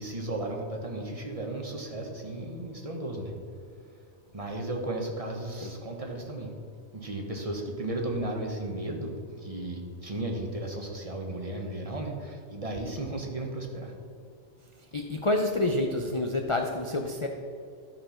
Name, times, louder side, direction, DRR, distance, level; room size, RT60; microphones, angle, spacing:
voice 1, 0.0-3.3 4.3-6.5 6.9-13.9, right 1 dB, 30° right, 1 dB, 1.1 m, -35 dB
voice 2, 14.9-17.3, left 2 dB, 35° left, 3 dB, 0.5 m, -28 dB
12.5 x 4.5 x 5.7 m, 2.4 s
omnidirectional pair, 1.2 m